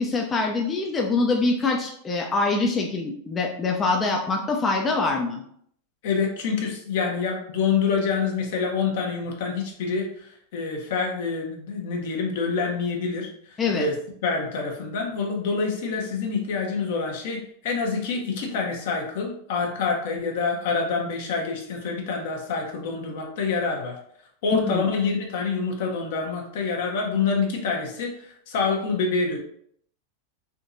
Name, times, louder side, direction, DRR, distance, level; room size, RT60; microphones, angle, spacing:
voice 1, 0.0-5.4 13.6-13.9 24.6-24.9, left 3 dB, 25° left, 1 dB, 0.4 m, -24 dB
voice 2, 6.0-14.0 14.2-24.0 24.4-29.4, left 5 dB, 65° left, 1 dB, 0.9 m, -27 dB
3.6 x 2.7 x 2.6 m, 0.66 s
hypercardioid pair, 100°, 0 cm